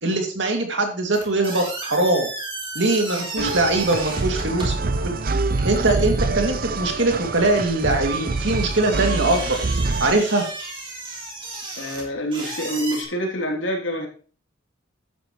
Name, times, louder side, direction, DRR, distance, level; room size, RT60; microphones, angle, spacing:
voice 1, 0.0-2.3 2.7-4.7 5.3-9.6 10.0-10.4, right 2 dB, 65° right, 2.6 m, -22 dB
sound 1, 1.1-13.0, right 2 dB, 25° right, 3.3 m, -35 dB
sound 2, 3.4-10.1, right 3 dB, 45° right, 0.6 m, -26 dB
voice 2, 11.8-14.1, equal, 80° left, 3.2 m, -26 dB
12.0 x 10.0 x 3.2 m
head